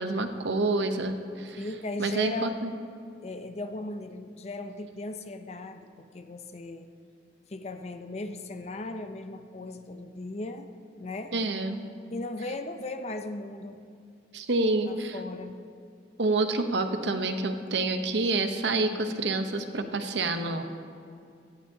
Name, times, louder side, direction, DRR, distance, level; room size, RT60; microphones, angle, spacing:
voice 1, 0.0-1.6 2.0-2.7 11.3-11.8 14.3-15.2 16.2-20.6, right 2 dB, 80° right, 7 dB, 0.8 m, -28 dB
voice 2, 1.6-2.6 3.2-6.9 7.5-10.7 10.9-11.4 12.1-13.8 14.8-15.6, left 2 dB, 35° left, 8 dB, 0.5 m, -37 dB
17.0 x 12.0 x 2.8 m, 2.3 s
head